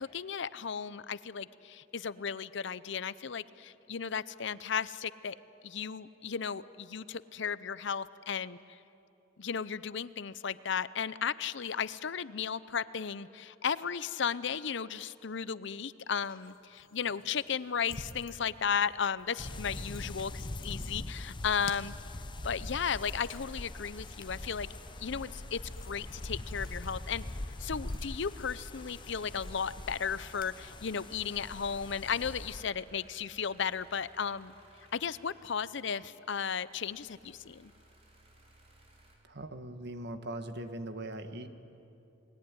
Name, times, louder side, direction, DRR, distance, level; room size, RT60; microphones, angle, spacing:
voice 1, 0.0-5.4 5.6-8.8 9.4-21.9 22.4-24.7 25.0-25.6 25.9-27.2 27.6-34.5 34.9-37.7, left 7 dB, 65° left, 17 dB, 0.7 m, -35 dB
sound 1, 16.0-30.6, left 4 dB, 45° left, 1.5 m, -54 dB
sound 2, 19.4-32.6, left 1 dB, 25° left, 0.7 m, -42 dB
sound 3, 22.2-35.8 36.3-39.2, right 1 dB, 35° right, 4.5 m, -61 dB
voice 2, 39.3-41.5, right 1 dB, 60° right, 9 dB, 1.5 m, -40 dB
29.0 x 20.5 x 9.7 m, 2.9 s
head